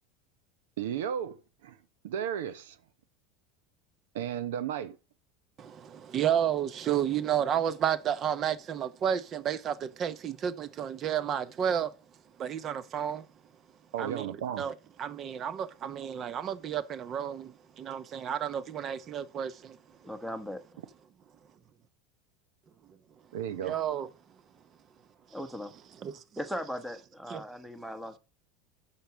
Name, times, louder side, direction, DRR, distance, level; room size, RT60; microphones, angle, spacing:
voice 1, 0.8-1.4 1.6-1.7 2.0-2.8 4.1-5.0 13.9-14.6 23.3-23.7, right 9 dB, 90° right, 0.9 m, -34 dB
voice 2, 5.6-11.9 12.4-13.3 14.0-14.3 14.6-19.8 23.6-24.1 26.0-26.2 27.3-27.4, right 9 dB, 35° right, 0.9 m, -31 dB
voice 3, 20.0-20.8 25.3-25.7 26.4-28.2, equal, ahead, 1.1 m, -38 dB
8.8 x 6.0 x 6.2 m
supercardioid pair, 140°, 0 cm